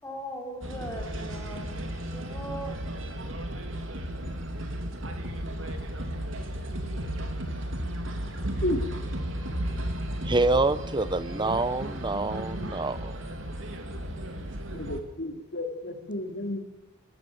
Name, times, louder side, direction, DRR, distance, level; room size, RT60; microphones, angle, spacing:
voice 1, 0.0-1.8 2.1-2.8, equal, 15° left, 6.4 m, -39 dB
sound 1, 0.6-15.0, right 1 dB, 75° right, 3.1 m, -34 dB
voice 2, 10.2-13.2, right 2 dB, 25° right, 1.0 m, -26 dB
voice 3, 14.7-16.6, left 1 dB, 55° left, 3.2 m, -32 dB
30.0 x 14.0 x 7.9 m
head